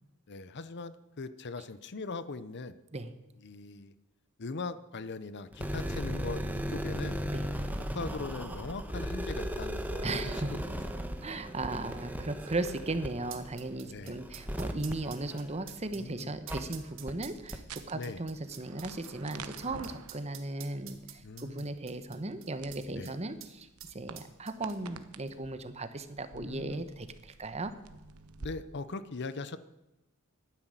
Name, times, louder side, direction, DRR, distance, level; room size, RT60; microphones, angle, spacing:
voice 1, 0.3-2.8 3.4-3.9 4.4-6.4 6.7-7.2 7.9-10.2 10.5-10.6 10.9-11.1 13.8-14.2 15.9-16.3 17.9-18.2 21.2-21.7 23.0-23.2 26.3-26.8 28.4-29.6, left 3 dB, 50° left, 15 dB, 0.7 m, -40 dB
sound 1, 5.5-15.9 16.5-16.6 17.1-17.2 17.5-17.6, equal, 10° right, 1.1 m, -37 dB
sound 2, 8.4-8.6 9.4-9.5 10.5-23.1 23.4-23.5 23.8-25.0 25.3-25.4, right 10 dB, 60° right, 1.5 m, -50 dB
voice 2, 10.0-10.6 11.2-23.7 23.9-27.7, right 2 dB, 30° right, 10 dB, 1.0 m, -37 dB
sound 3, 16.6-28.5, right 4 dB, 90° right, 1.0 m, -51 dB
12.0 x 10.0 x 9.0 m, 0.99 s
head